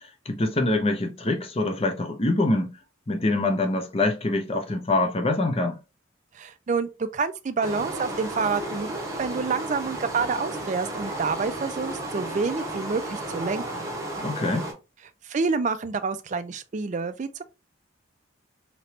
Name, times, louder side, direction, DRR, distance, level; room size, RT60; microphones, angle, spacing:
voice 1, 0.0-2.8 3.1-5.8 14.2-14.7, left 2 dB, 30° left, 0.6 m, -25 dB
voice 2, 6.3-13.9 15.2-17.4, right 4 dB, 40° right, 0.4 m, -28 dB
sound 1, 7.6-14.7, right 1 dB, 15° right, 1.0 m, -33 dB
3.2 x 2.9 x 2.8 m
head